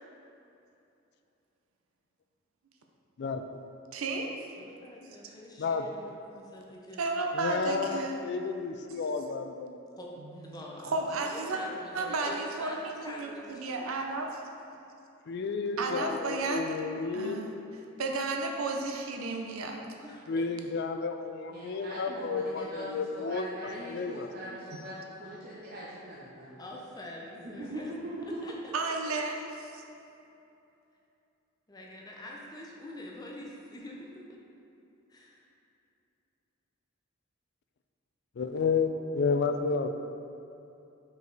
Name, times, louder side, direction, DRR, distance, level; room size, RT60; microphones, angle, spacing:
voice 1, 3.9-4.5 7.0-8.3 10.5-11.6 11.9-14.4 15.8-16.8 17.1-17.5 18.0-19.8 28.7-29.8, right 3 dB, 90° right, 2 dB, 0.6 m, -33 dB
voice 2, 4.6-7.0 10.0-10.9 11.2-14.1 20.0-20.5 26.6-27.9 28.4-29.4 31.7-34.4 35.1-35.5, left 1 dB, 20° left, -2 dB, 0.6 m, -45 dB
voice 3, 7.3-9.8 15.3-17.4 20.3-23.5 23.8-24.3 38.4-39.9, left 4 dB, 55° left, 7 dB, 0.3 m, -31 dB
voice 4, 21.5-26.7 27.4-28.0, right 1 dB, 45° right, -7 dB, 0.7 m, -42 dB
5.1 x 4.7 x 4.0 m, 2.8 s
head